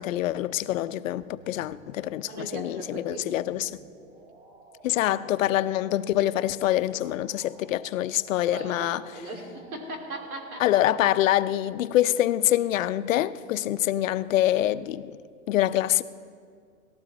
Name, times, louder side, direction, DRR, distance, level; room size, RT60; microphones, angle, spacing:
voice 1, 0.0-3.8 4.8-9.0 10.6-15.2 15.5-16.0, left 13 dB, 70° left, 13 dB, 0.6 m, -25 dB
sound 1, 1.3-14.1, right 2 dB, 25° right, 5.2 m, -53 dB
voice 2, 2.3-3.3 8.5-10.7, right 2 dB, 85° right, 3 dB, 3.0 m, -38 dB
18.5 x 15.0 x 4.1 m, 2.1 s
supercardioid pair, 165°, 42 cm